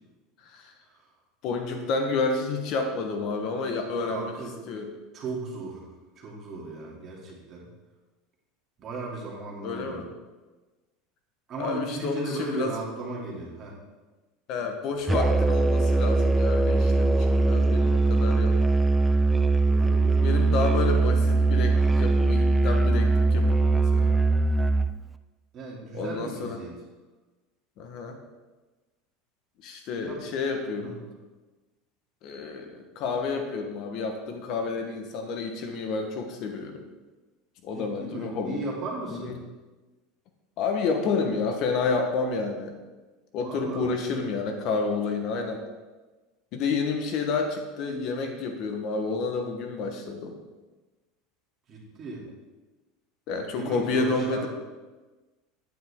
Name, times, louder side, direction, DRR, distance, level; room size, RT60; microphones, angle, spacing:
voice 1, 1.4-4.3 4.7-4.9 9.6-10.1 11.6-12.7 14.5-18.6 20.2-24.2 25.9-26.6 27.8-28.2 29.6-31.0 32.2-36.8 37.6-38.6 39.2-39.3 40.6-42.7 43.3-45.6 46.5-50.3 53.3-54.5, left 4 dB, 45° left, 5 dB, 1.2 m, -30 dB
voice 2, 4.0-4.6 5.1-7.7 8.8-10.1 11.5-13.8 19.7-20.4 20.9-21.0 25.5-26.8 30.0-30.2 30.8-31.0 37.7-39.4 43.4-43.9 51.7-52.3 53.5-54.5, right 3 dB, 30° right, -3 dB, 2.7 m, -36 dB
Musical instrument, 15.1-25.0, right 3 dB, 10° right, 0.3 m, -21 dB
10.0 x 9.3 x 3.6 m, 1.2 s
supercardioid pair, 150°, 0 cm